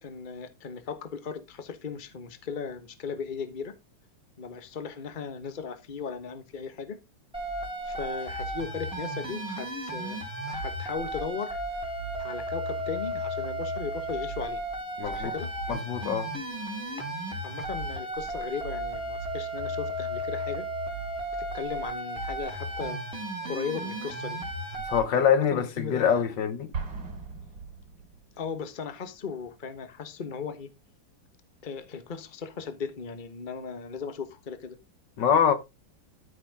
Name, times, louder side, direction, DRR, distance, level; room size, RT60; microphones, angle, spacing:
voice 1, 0.0-3.7 4.4-7.0 7.8-10.2 10.5-11.6 12.2-14.6 15.0-15.5 17.4-20.6 21.5-23.0 23.5-24.4 25.2-26.3 28.4-30.7 31.6-34.8, left 6 dB, 30° left, 1.3 m, -37 dB
sound 1, 7.3-25.0, right 1 dB, 5° right, 3.8 m, -34 dB
voice 2, 15.0-15.3 15.7-16.3 24.9-26.7 35.2-35.5, left 7 dB, 70° left, 1.8 m, -24 dB
Explosion, 26.7-28.5, right 5 dB, 60° right, 3.4 m, -38 dB
13.0 x 6.5 x 3.6 m
omnidirectional pair, 2.0 m